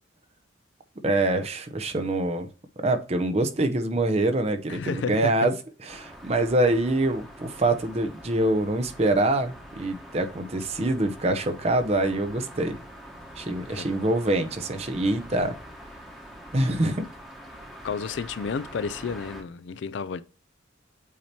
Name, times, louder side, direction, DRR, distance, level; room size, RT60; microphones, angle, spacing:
voice 1, 1.0-2.5 2.8-5.5 5.9-12.8 13.4-15.5 16.5-17.0, right 2 dB, 35° right, 0.7 m, -25 dB
voice 2, 4.7-5.3 13.7-13.9 17.8-20.2, left 5 dB, 70° left, 0.4 m, -31 dB
sound 1, 5.9-19.4, equal, ahead, 1.1 m, -45 dB
8.3 x 2.9 x 4.3 m
head